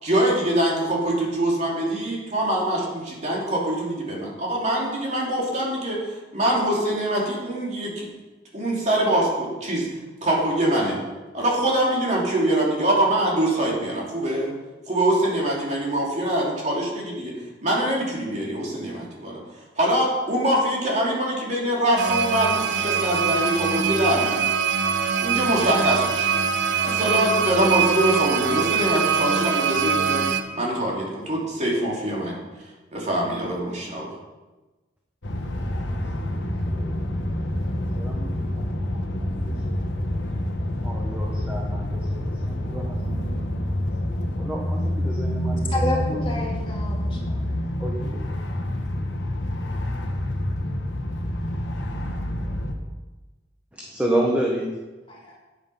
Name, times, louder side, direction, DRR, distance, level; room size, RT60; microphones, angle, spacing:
voice 1, 0.0-8.1 8.5-9.9 10.2-11.0 11.3-14.5 14.9-17.3 17.6-19.4 19.8-24.4 25.2-26.3 26.8-30.2 30.5-32.4 32.9-34.1, right 1 dB, 40° right, -3 dB, 3.0 m, -24 dB
sound 1, 22.0-30.4, right 6 dB, 65° right, 0.8 m, -23 dB
sound 2, 35.2-52.7, left 1 dB, 65° left, 1.4 m, -27 dB
voice 2, 36.4-36.9 37.3-39.5 40.8-43.6 44.3-46.0 46.5-46.6 47.8-48.3 53.7-54.7, right 1 dB, 5° right, -2 dB, 1.2 m, -31 dB
voice 3, 45.7-47.5 55.1-55.4, left 2 dB, 30° left, -2 dB, 2.2 m, -30 dB
9.8 x 8.9 x 5.8 m, 1.2 s
head